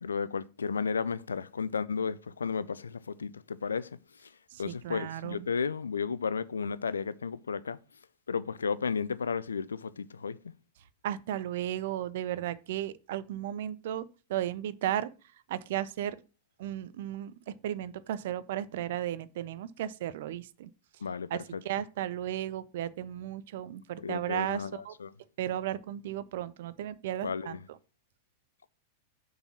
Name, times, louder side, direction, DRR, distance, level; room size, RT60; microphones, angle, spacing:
voice 1, 0.0-4.3 4.6-7.8 8.3-10.4 21.0-21.6 24.0-25.1 27.2-27.6, left 5 dB, 75° left, 0.4 m, -33 dB
voice 2, 4.5-5.5 11.0-15.1 15.5-16.2 16.6-20.7 21.3-24.9 25.4-27.6, right 12 dB, 60° right, 0.5 m, -35 dB
6.7 x 3.9 x 6.1 m
figure-of-eight pair, 90°, 0 cm